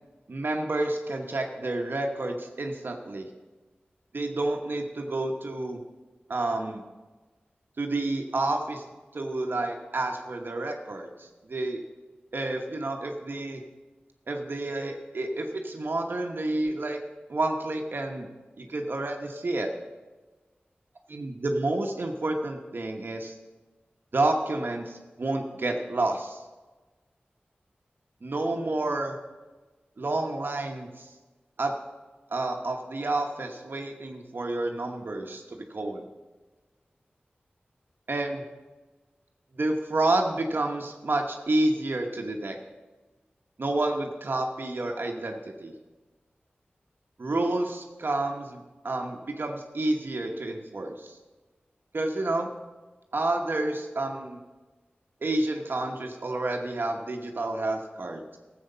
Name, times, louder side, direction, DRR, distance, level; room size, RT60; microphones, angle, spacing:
voice 1, 0.3-3.3 4.1-5.8 6.3-6.8 7.8-8.8 9.1-11.8 12.3-13.6 14.3-17.0 17.3-18.3 18.6-19.7 21.1-23.3 24.1-26.4 28.2-29.2 30.0-31.1 31.6-31.7 32.3-36.0 38.1-38.4 39.5-42.6 43.6-45.7 47.2-51.2 51.9-52.5 53.1-54.4 55.2-58.4, right 2 dB, 65° right, 3 dB, 1.1 m, -29 dB
14.0 x 7.8 x 5.5 m, 1.2 s
wide cardioid pair, 65°, 4 cm